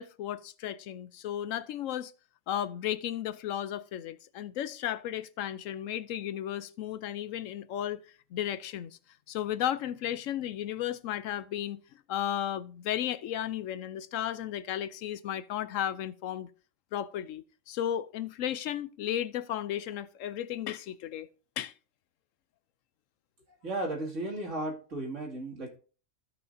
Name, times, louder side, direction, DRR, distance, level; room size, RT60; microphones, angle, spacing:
voice 1, 0.0-2.1 2.5-8.0 8.3-9.0 9.3-11.8 12.1-16.5 16.9-21.3 21.6-21.7, left 11 dB, 75° left, 0.9 m, -34 dB
voice 2, 23.6-25.8, right 1 dB, 65° right, 2.6 m, -35 dB
15.0 x 5.8 x 2.6 m
omnidirectional pair, 1.4 m